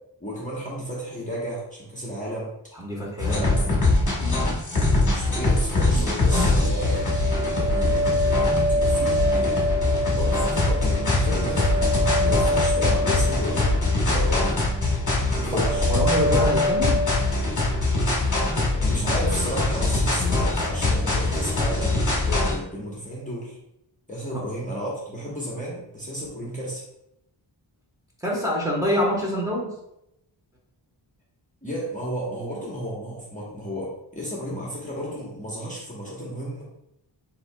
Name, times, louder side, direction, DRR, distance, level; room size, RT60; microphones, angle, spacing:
voice 1, 0.2-2.5 3.2-3.8 5.0-9.7 10.1-11.8 12.2-14.6 15.3-15.9 18.5-23.6 24.1-26.8 31.6-36.6, equal, 15° left, -6 dB, 1.1 m, -33 dB
voice 2, 2.8-3.6 15.5-17.0 28.2-29.7, equal, 5° right, -4 dB, 1.2 m, -26 dB
sound 1, 3.2-22.6, left 2 dB, 40° left, 1.3 m, -23 dB
sound 2, 6.3-14.4 14.7-15.3 15.6-17.3, left 1 dB, 35° right, 0.8 m, -26 dB
7.8 x 2.8 x 2.2 m, 0.83 s
wide cardioid pair, 110°, 46 cm